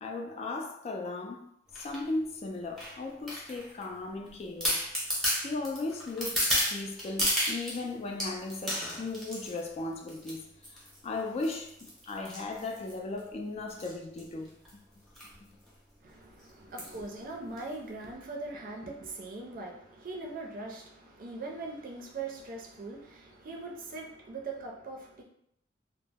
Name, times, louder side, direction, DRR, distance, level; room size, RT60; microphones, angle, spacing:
voice 1, 0.0-1.5 1.8-4.8 5.4-10.5 11.0-14.5, left 2 dB, 35° left, 0.3 m, -36 dB
sound 1, 1.7-2.0 2.8-3.8 4.3-4.4 4.6-7.8 8.2-9.6 10.1-10.4 10.6-11.0 11.4-13.2 13.7-13.9 14.2-14.3 14.5-14.7 15.2-15.3 15.7-15.8 16.8-17.0 17.6-17.7, equal, ahead, 0.7 m, -32 dB
voice 2, 16.0-25.2, right 3 dB, 50° right, 0.5 m, -41 dB
2.0 x 2.0 x 3.4 m
head